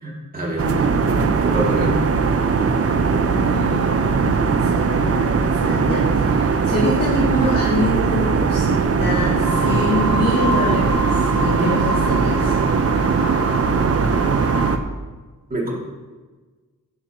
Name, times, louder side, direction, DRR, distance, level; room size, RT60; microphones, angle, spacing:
voice 1, 0.0-0.6 1.1-2.0 15.5-15.7, right 1 dB, 25° right, -5 dB, 2.5 m, -25 dB
voice 2, 0.6-1.3 2.8-12.6, left 1 dB, 70° left, -7 dB, 2.3 m, -26 dB
sound 1, 0.6-14.8, right 5 dB, 45° right, 0.6 m, -19 dB
sound 2, 9.4-14.7, right 1 dB, 70° right, 2.1 m, -27 dB
15.5 x 7.3 x 3.0 m, 1.3 s
wide cardioid pair, 170°, 34 cm